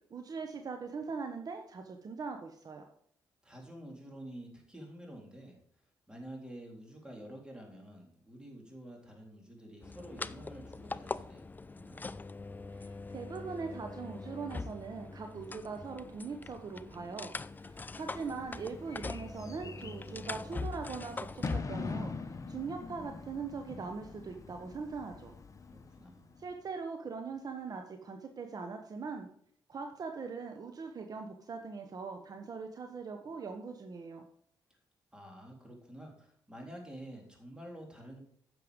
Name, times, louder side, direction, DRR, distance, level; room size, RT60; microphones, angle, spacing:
voice 1, 0.1-2.8 12.7-17.3 17.6-25.3 26.4-29.3 29.7-34.2, right 5 dB, 50° right, 5 dB, 1.0 m, -41 dB
voice 2, 3.4-5.6 6.1-11.4 11.7-12.0 25.7-26.3 35.1-38.2, right 1 dB, 10° right, 0 dB, 3.6 m, -49 dB
sound 1, 9.8-21.9, left 3 dB, 20° left, 0.4 m, -42 dB
Bird / Fireworks, 17.4-26.6, left 4 dB, 40° left, 0.9 m, -44 dB
9.7 x 6.7 x 5.2 m, 0.63 s
cardioid pair, 75°, 8 cm